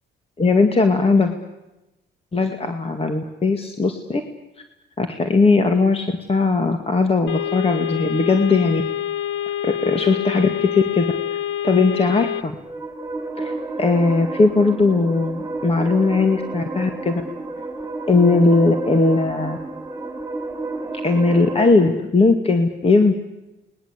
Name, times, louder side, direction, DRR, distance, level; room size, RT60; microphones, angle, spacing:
voice 1, 0.4-1.3 2.3-4.2 5.0-8.8 9.6-11.1 11.6-12.5 13.4-17.2 18.1-19.6 21.0-23.1, left 3 dB, 30° left, 6 dB, 2.1 m, -18 dB
sound 1, 7.3-12.4, left 11 dB, 75° left, 1.1 m, -26 dB
sound 2, 12.3-21.7, right 2 dB, 15° right, 5.4 m, -31 dB
29.0 x 20.5 x 8.3 m, 1.0 s
cardioid pair, 90°, 20 cm